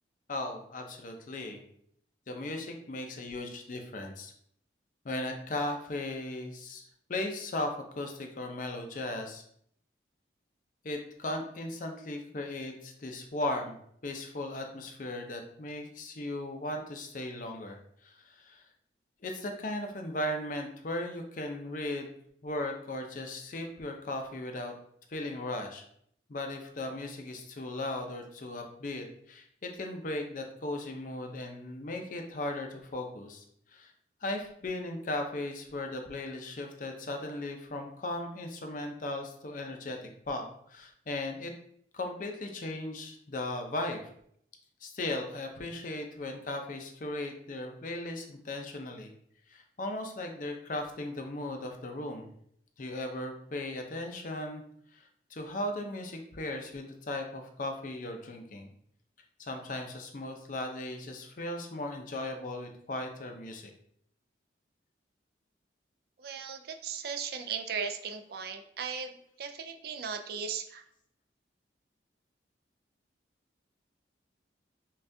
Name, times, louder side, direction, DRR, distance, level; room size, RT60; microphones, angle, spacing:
voice 1, 0.3-1.6 2.3-4.3 5.0-6.8 7.1-9.4 10.8-18.6 19.2-22.1 22.4-24.7 25.1-25.8 26.3-33.4 33.7-33.9 34.2-40.4 40.7-41.5 41.9-44.0 44.8-49.1 49.5-52.3 52.8-54.6 54.9-58.7 59.4-63.7, left 1 dB, 45° left, 4 dB, 0.5 m, -37 dB
voice 2, 66.2-70.8, right 6 dB, 55° right, 6 dB, 0.4 m, -37 dB
5.5 x 2.4 x 2.6 m, 0.68 s
head